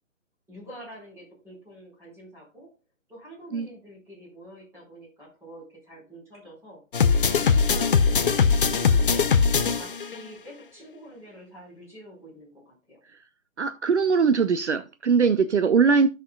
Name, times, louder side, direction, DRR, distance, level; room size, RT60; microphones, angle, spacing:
voice 1, 0.5-2.7 3.1-9.3 9.7-13.0, equal, 5° right, 4.7 m, -46 dB
sound 1, 6.9-10.1, left 5 dB, 40° left, 0.7 m, -21 dB
voice 2, 13.6-16.1, right 5 dB, 60° right, 0.7 m, -21 dB
15.0 x 6.1 x 2.3 m
figure-of-eight pair, 145°, 40 cm